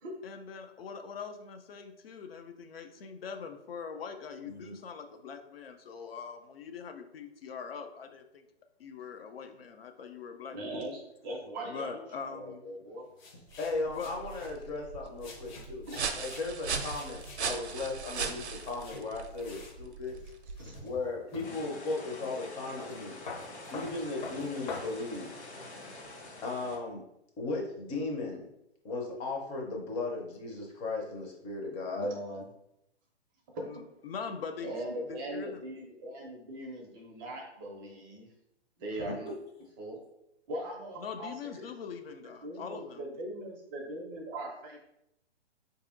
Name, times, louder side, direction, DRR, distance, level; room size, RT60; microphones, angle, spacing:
voice 1, 0.2-8.4 8.8-10.8 11.7-12.6 13.9-14.1 33.6-35.6 41.0-43.0, left 6 dB, 60° left, 6 dB, 0.5 m, -42 dB
voice 2, 10.5-13.1 15.8-16.0 19.5-19.6 20.6-20.8 31.9-32.4 33.5-33.6 34.6-38.3 38.8-39.3 39.8-40.0 40.5-41.7 42.4-44.8, right 1 dB, 20° right, 0 dB, 0.5 m, -40 dB
sound 1, 13.2-14.5 15.2-19.0 19.3-19.8 20.1-21.6 22.1-22.2 22.4-24.8, left 3 dB, 45° left, 0.9 m, -46 dB
sound 2, 13.5-21.0, right 5 dB, 80° right, 0.6 m, -39 dB
voice 3, 13.6-15.9 16.2-20.1 20.8-23.2 23.7-25.3 26.4-27.0 27.4-28.5 28.8-32.1 39.0-39.3, left 3 dB, 15° left, -1 dB, 0.6 m, -36 dB
sound 3, 21.4-26.8, left 2 dB, 80° left, 1.0 m, -46 dB
4.5 x 2.7 x 2.5 m, 0.83 s
figure-of-eight pair, 125°, 33 cm